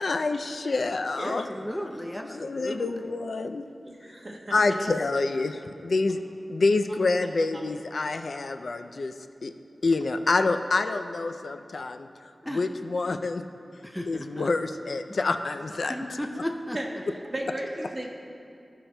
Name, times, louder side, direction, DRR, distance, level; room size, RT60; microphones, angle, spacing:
voice 1, 0.0-1.5 2.2-3.7 4.5-6.2 6.5-9.1 9.4-9.5 9.8-12.1 12.5-13.4 14.1-16.2, left 3 dB, 80° left, 7 dB, 0.3 m, -27 dB
voice 2, 1.2-2.8 4.7-5.0 12.4-12.6 13.8-14.5 15.9-16.8, equal, 10° left, 3 dB, 0.5 m, -35 dB
voice 3, 3.8-4.6 16.7-18.1, right 1 dB, 40° right, -1 dB, 1.2 m, -35 dB
16.5 x 5.7 x 2.2 m, 2.5 s
wide cardioid pair, 75°, 0 cm